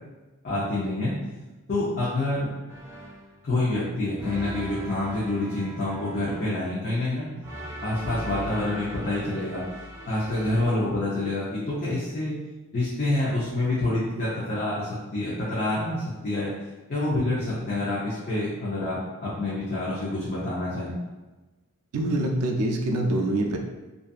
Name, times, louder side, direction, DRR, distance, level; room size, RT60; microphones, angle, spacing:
voice 1, 0.4-1.1 1.7-2.5 3.4-7.3 7.8-9.6 10.1-12.4 12.7-16.5 16.9-20.9, left 2 dB, 45° left, -8 dB, 0.6 m, -27 dB
sound 1, 2.7-3.4 4.2-6.7 7.4-10.9, equal, 10° right, 0.3 m, -39 dB
voice 2, 21.9-23.6, right 1 dB, 85° right, 2 dB, 0.4 m, -25 dB
2.6 x 2.4 x 2.3 m, 1.1 s
head